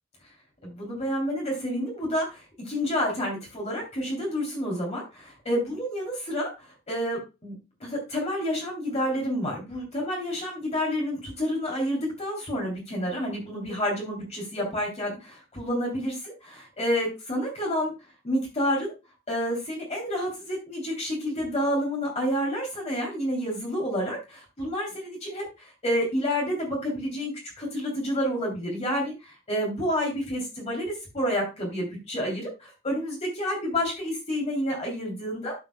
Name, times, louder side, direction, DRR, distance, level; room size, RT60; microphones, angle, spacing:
voice 1, 0.6-7.5 7.8-17.9 18.2-18.9 19.3-35.5, equal, 35° left, -1 dB, 3.1 m, -29 dB
12.0 x 7.2 x 2.2 m, 0.28 s
head